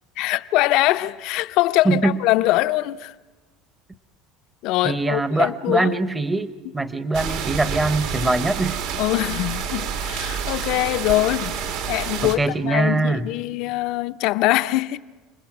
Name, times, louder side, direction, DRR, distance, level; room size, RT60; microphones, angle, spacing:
voice 1, 0.2-3.1 4.6-6.0 8.2-8.3 9.0-11.6 11.9-15.0, left 17 dB, 60° left, 0.6 m, -23 dB
voice 2, 1.8-2.2 4.8-8.8 12.2-13.3, right 2 dB, 10° right, 0.8 m, -22 dB
sound 1, 7.1-12.4, right 7 dB, 70° right, 2.0 m, -28 dB
30.0 x 20.5 x 6.0 m
cardioid pair, 155°, 0 cm